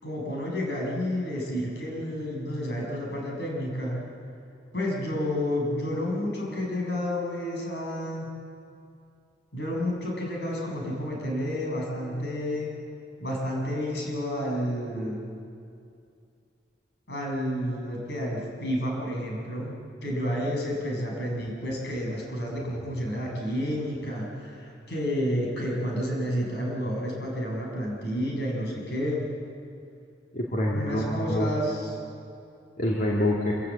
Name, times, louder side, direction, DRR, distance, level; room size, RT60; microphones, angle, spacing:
voice 1, 0.0-4.0 4.7-8.3 9.5-12.7 13.2-15.2 17.1-29.2 30.7-31.9, equal, 65° left, -1 dB, 6.6 m, -30 dB
voice 2, 30.3-31.5 32.8-33.5, left 1 dB, 50° left, -4 dB, 2.7 m, -26 dB
26.0 x 16.5 x 8.4 m, 2.5 s
head